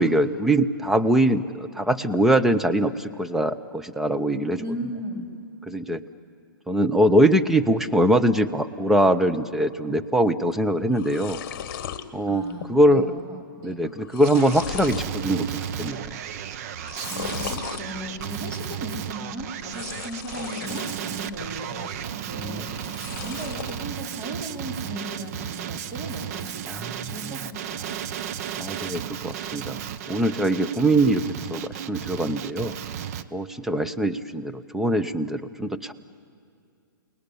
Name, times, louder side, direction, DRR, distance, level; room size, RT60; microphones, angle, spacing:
voice 1, 0.0-4.6 5.7-6.0 6.7-11.4 12.1-12.4 12.7-13.1 13.6-15.5 15.8-16.2 22.4-22.7 26.7-26.9 28.6-29.8 30.1-31.2 31.5-32.7 33.3-35.9, right 1 dB, 5° right, 9 dB, 0.6 m, -22 dB
voice 2, 4.6-5.3 12.3-13.8 17.1-28.0, right 1 dB, 25° right, 1 dB, 4.4 m, -37 dB
sound 1, 10.5-10.6 10.8-12.0 12.5-12.9 13.2-13.3 13.8-15.1 15.6-16.0 16.8-17.8 19.6-21.0 21.4-22.0 22.7-23.8, left 9 dB, 45° left, 1.5 m, -36 dB
Male speech man speaking, 14.2-33.2, right 9 dB, 40° right, 0.9 m, -34 dB
29.0 x 19.5 x 10.0 m, 2.4 s
hypercardioid pair, 145°, 12 cm